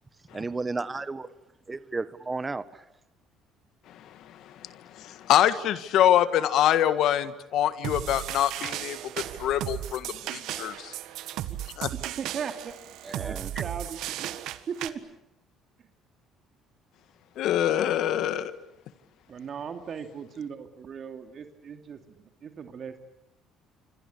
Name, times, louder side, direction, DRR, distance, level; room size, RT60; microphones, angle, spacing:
voice 1, 0.3-1.3 1.7-2.8 13.0-13.5, right 3 dB, 20° right, 14 dB, 1.3 m, -33 dB
voice 2, 4.6-9.0 9.4-10.9 11.8-11.9 17.4-18.5, left 11 dB, 70° left, 13 dB, 1.6 m, -25 dB
sound 1, 7.8-14.9, right 13 dB, 75° right, 1.6 m, -35 dB
voice 3, 11.9-12.7 13.2-14.4 14.7-15.0 19.3-23.0, right 7 dB, 50° right, 6 dB, 2.6 m, -38 dB
27.5 x 25.0 x 8.4 m, 0.85 s
supercardioid pair, 85°, 0 cm